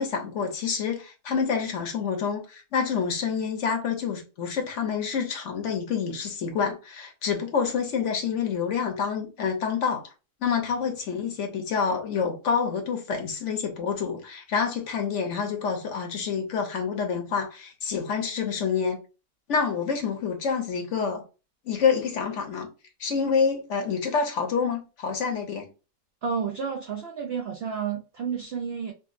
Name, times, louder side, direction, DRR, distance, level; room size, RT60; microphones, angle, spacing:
voice 1, 0.0-10.1 10.4-19.0 19.5-21.2 21.7-22.7 23.0-25.7, left 6 dB, 60° left, 0.9 m, -27 dB
voice 2, 26.2-28.9, right 6 dB, 65° right, 0.6 m, -31 dB
4.9 x 2.2 x 2.5 m
omnidirectional pair, 1.7 m